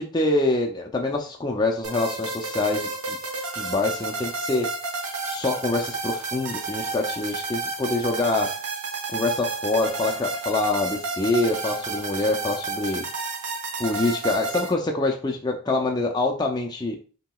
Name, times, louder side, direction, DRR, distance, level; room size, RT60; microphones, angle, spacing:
voice 1, 0.0-3.2 3.6-4.7 5.3-8.6 9.1-13.0 13.8-17.0, left 2 dB, 20° left, 2 dB, 0.4 m, -25 dB
sound 1, 1.8-14.7, right 3 dB, 85° right, 1.0 m, -31 dB
5.7 x 2.9 x 2.3 m, 0.37 s
head